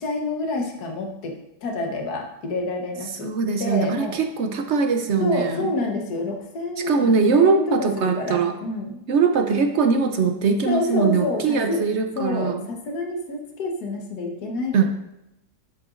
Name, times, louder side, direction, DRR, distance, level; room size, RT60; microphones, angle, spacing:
voice 1, 0.0-1.3 1.6-3.3 3.6-4.2 5.2-9.0 10.7-11.8 12.1-14.8, left 2 dB, 65° left, 1 dB, 1.7 m, -28 dB
voice 2, 3.2-5.7 6.9-8.5 9.1-12.7 14.7-14.8, right 5 dB, 60° right, 5 dB, 0.7 m, -21 dB
11.0 x 7.8 x 2.6 m, 0.87 s
omnidirectional pair, 1.8 m